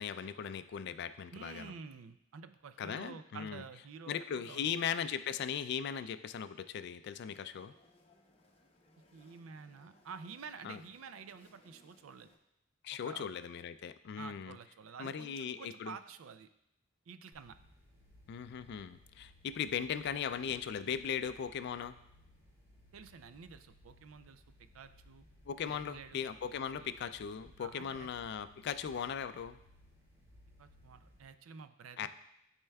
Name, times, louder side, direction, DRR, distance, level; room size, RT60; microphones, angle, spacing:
voice 1, 0.0-1.7 2.8-3.6 4.1-7.7 10.6-10.8 12.8-14.6 15.0-15.9 18.3-22.0 25.5-29.6 32.0-32.1, left 7 dB, 55° left, 12 dB, 0.3 m, -38 dB
voice 2, 1.3-4.1 4.4-4.7 9.1-12.3 12.9-13.3 14.2-16.5 17.1-17.6 22.9-24.4 24.7-25.2 25.7-26.2 26.8-26.9 27.6-28.1 30.6-32.1, right 5 dB, 85° right, 11 dB, 0.4 m, -50 dB
sound 1, 7.2-12.4, left 1 dB, 30° left, 0.7 m, -66 dB
sound 2, 17.3-31.3, left 1 dB, 20° right, 2.5 m, -62 dB
12.0 x 4.4 x 2.3 m, 0.80 s
head